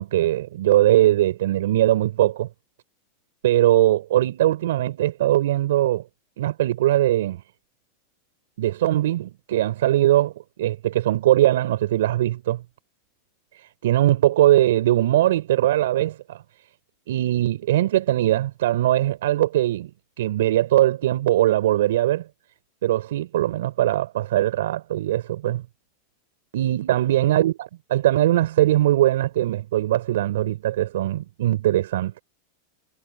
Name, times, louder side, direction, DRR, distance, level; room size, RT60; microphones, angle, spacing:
voice 1, 0.0-2.5 3.4-6.0 6.4-7.4 8.6-12.6 13.8-16.4 17.1-19.9 20.2-22.2 22.8-25.6 26.5-32.2, right 14 dB, 75° right, 5.6 m, -21 dB
hypercardioid pair, 120°, 0 cm